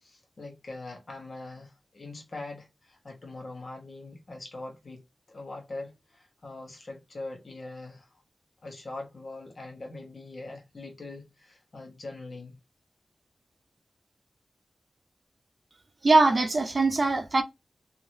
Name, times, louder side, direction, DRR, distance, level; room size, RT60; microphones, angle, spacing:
voice 1, 0.0-8.1 8.6-12.6, left 2 dB, 60° left, 1.2 m, -42 dB
voice 2, 16.0-17.4, right 3 dB, 50° right, 0.6 m, -21 dB
3.1 x 2.8 x 2.7 m
wide cardioid pair, 65°, 0 cm